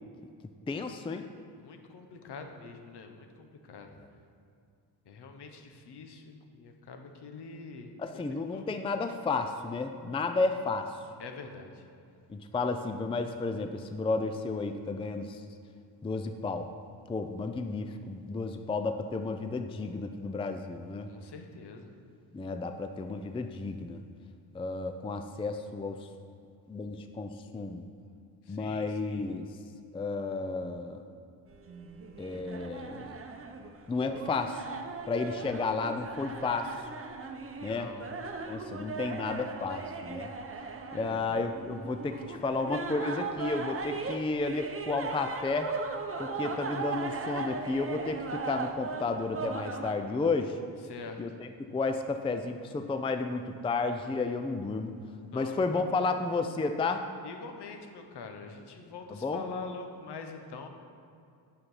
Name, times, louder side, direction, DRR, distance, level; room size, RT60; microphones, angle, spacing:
voice 1, 0.7-1.2 8.0-10.9 12.3-15.4 16.0-16.7 17.1-21.1 22.3-24.0 24.5-26.1 26.7-27.8 28.5-29.5 29.9-31.0 32.2-33.2 33.9-34.6 35.1-36.7 37.6-37.9 38.5-40.3 40.9-45.7 46.2-50.6 51.2-54.9 55.3-57.0 59.1-59.4, left 3 dB, 15° left, 7 dB, 0.4 m, -32 dB
voice 2, 1.6-3.9 5.1-8.2 8.5-8.7 11.2-11.8 21.1-21.9 28.5-29.3 37.6-38.1 38.6-38.8 40.9-41.2 50.8-51.2 55.3-56.1 57.2-60.7, left 4 dB, 60° left, 5 dB, 1.1 m, -45 dB
sound 1, 31.5-49.9, right 4 dB, 30° right, 0.8 m, -38 dB
6.7 x 6.0 x 5.5 m, 2.4 s
supercardioid pair, 70°, 45 cm